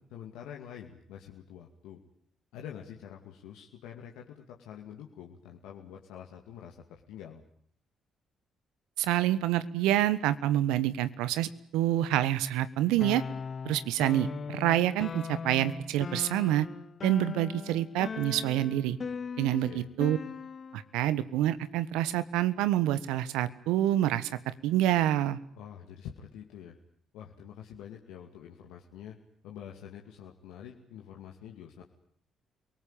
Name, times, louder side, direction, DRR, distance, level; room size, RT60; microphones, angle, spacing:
voice 1, 0.0-2.0 2.5-6.8 7.1-7.4 19.6-19.9 25.5-26.8 27.1-29.2 29.4-31.8, left 9 dB, 80° left, 1 dB, 2.4 m, -46 dB
voice 2, 9.0-13.2 13.6-16.7 17.0-19.0 19.4-20.2 20.7-24.4 24.6-25.4, right 13 dB, 80° right, 15 dB, 1.3 m, -27 dB
sound 1, 13.0-20.9, left 5 dB, 45° left, 1.6 m, -39 dB
28.5 x 18.5 x 9.0 m, 0.64 s
hypercardioid pair, 55°, 0 cm